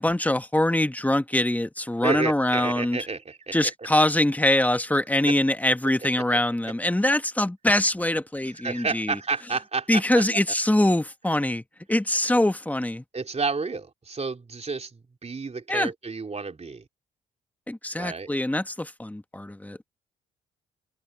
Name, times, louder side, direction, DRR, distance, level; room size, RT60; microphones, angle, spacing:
voice 1, 0.0-3.0 3.5-9.2 9.9-11.6 11.9-13.0 15.7-15.9 17.7-19.8, left 1 dB, 10° left, 1.6 m, -23 dB
voice 2, 2.0-3.7 8.6-10.2 13.1-16.8 18.0-18.3, right 4 dB, 35° right, 3.3 m, -30 dB
supercardioid pair, 50°, 19 cm